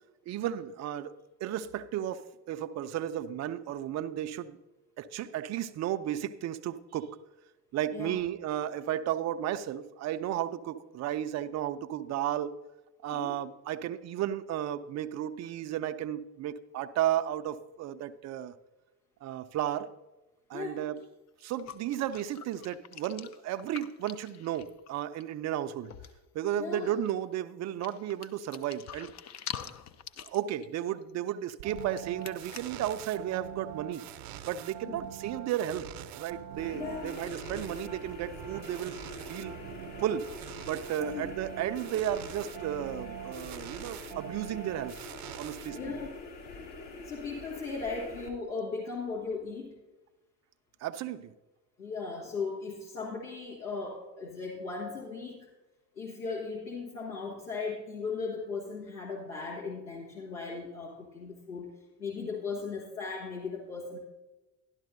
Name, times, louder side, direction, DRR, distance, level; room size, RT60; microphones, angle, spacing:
voice 1, 0.3-1.2 1.4-4.6 5.0-7.2 7.7-12.5 13.0-18.5 19.2-19.9 20.5-21.0 21.4-25.9 26.3-29.1 30.2-34.1 34.5-35.9 36.2-39.0 39.3-39.5 40.0-40.3 40.7-45.0 45.4-45.8 50.8-51.3, right 11 dB, 35° right, 11 dB, 0.5 m, -33 dB
voice 2, 7.9-8.2 13.1-13.3 20.5-20.8 26.6-26.9 34.8-35.0 36.7-37.1 41.0-41.2 45.7-46.1 47.0-49.7 51.8-55.5 55.9-61.7 62.0-64.0, left 4 dB, 80° left, -5 dB, 1.6 m, -37 dB
sound 1, 21.0-21.1 21.4-25.2 25.6-25.7 25.8-26.3 26.6-27.2 27.8-32.8, left 9 dB, 35° left, 0.6 m, -45 dB
sound 2, 31.6-46.2, right 11 dB, 60° right, 0.8 m, -44 dB
sound 3, 36.6-48.3, left 3 dB, 60° left, 2.0 m, -45 dB
12.0 x 11.5 x 2.6 m, 1.1 s
figure-of-eight pair, 50°, 50 cm